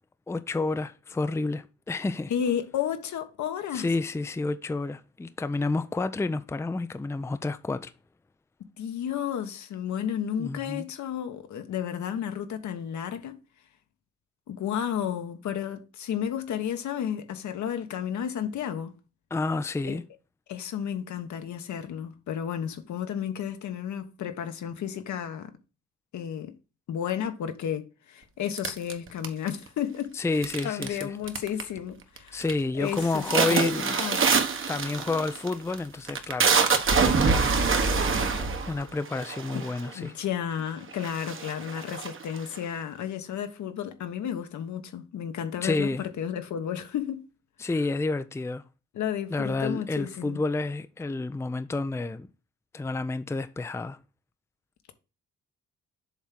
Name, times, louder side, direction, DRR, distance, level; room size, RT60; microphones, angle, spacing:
voice 1, 0.3-2.3 3.7-7.9 10.4-10.9 19.3-20.0 30.1-31.1 32.3-34.0 34.7-36.5 37.0-37.5 38.7-40.1 45.6-46.0 47.6-48.6 49.3-52.3 52.7-54.0, left 3 dB, 10° left, 0.5 m, -29 dB
voice 2, 2.3-3.9 8.8-13.4 14.5-18.9 19.9-20.0 20.5-25.5 26.1-26.5 26.9-32.4 32.8-34.2 39.5-39.6 39.9-47.2 48.9-50.4, left 9 dB, 70° left, 1.3 m, -32 dB
sound 1, 28.6-29.7 30.4-31.0 31.3-31.8 32.2-32.5 32.9-39.9 40.6-40.7 41.0-42.6, right 5 dB, 40° right, 1.3 m, -25 dB
7.2 x 3.6 x 6.0 m
cardioid pair, 90°, 30 cm